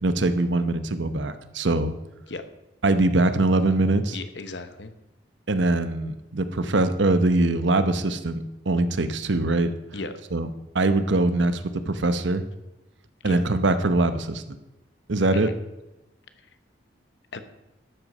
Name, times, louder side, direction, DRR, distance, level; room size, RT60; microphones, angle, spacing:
voice 1, 0.0-1.9 2.8-4.2 5.5-9.7 10.3-10.5 10.7-12.4 13.2-14.6 15.1-15.5, right 2 dB, 75° right, 11 dB, 0.9 m, -22 dB
voice 2, 4.1-4.9 9.9-10.1 13.2-13.4 15.3-15.5 17.3-17.4, left 3 dB, 65° left, 10 dB, 1.0 m, -35 dB
12.5 x 8.0 x 5.4 m, 0.98 s
head